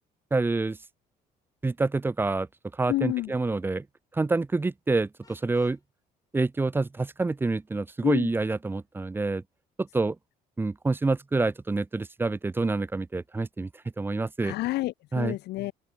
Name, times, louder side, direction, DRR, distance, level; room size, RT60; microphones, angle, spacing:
voice 1, 0.3-0.8 1.6-2.5 2.8-3.8 4.1-5.8 6.3-9.4 9.8-10.2 10.6-13.7 14.0-14.5 15.1-15.3, right 3 dB, 10° right, 0.4 m, -27 dB
voice 2, 2.9-3.3 8.0-8.3 14.4-15.7, left 17 dB, 80° left, 1.4 m, -29 dB
Vehicle horn car horn honking, 5.2-5.8, left 4 dB, 20° left, 4.0 m, -59 dB
open air
cardioid pair, 110°, 17 cm